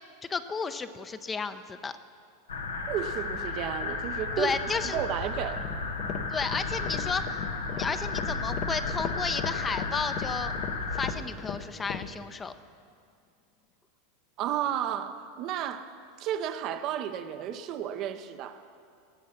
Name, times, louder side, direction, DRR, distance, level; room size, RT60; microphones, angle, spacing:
voice 1, 0.3-1.9 4.4-5.0 6.3-10.5 10.9-12.5, left 4 dB, 20° left, 11 dB, 0.6 m, -33 dB
sound 1, 2.5-11.1, left 3 dB, 90° left, 1.0 m, -33 dB
voice 2, 2.8-5.6 14.4-18.6, right 10 dB, 50° right, 9 dB, 0.7 m, -33 dB
sound 2, 5.5-12.1, left 7 dB, 50° left, 0.8 m, -37 dB
17.5 x 7.4 x 5.8 m, 2.3 s
hypercardioid pair, 95°, 0 cm